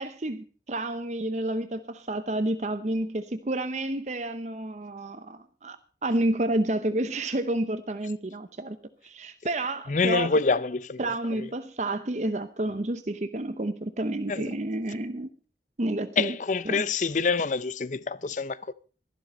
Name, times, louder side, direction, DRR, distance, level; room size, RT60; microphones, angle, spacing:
voice 1, 0.0-5.8 6.0-8.8 9.0-10.4 11.0-15.3 15.8-16.4 16.7-16.8, right 1 dB, 40° right, 0.8 m, -30 dB
voice 2, 9.9-11.0 11.4-11.5 14.3-14.4 16.2-18.7, left 4 dB, 45° left, 0.5 m, -26 dB
13.0 x 11.5 x 5.3 m
head